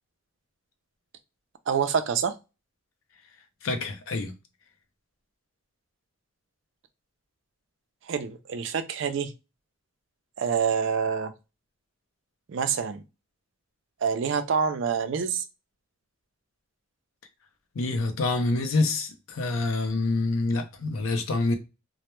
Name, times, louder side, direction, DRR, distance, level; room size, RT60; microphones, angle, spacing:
voice 1, 1.7-2.3 8.1-9.3 10.4-11.3 12.5-13.0 14.0-15.4, right 6 dB, 60° right, 0.4 m, -26 dB
voice 2, 3.6-4.3 17.8-21.5, left 2 dB, 85° left, 0.5 m, -26 dB
2.1 x 2.1 x 2.9 m
head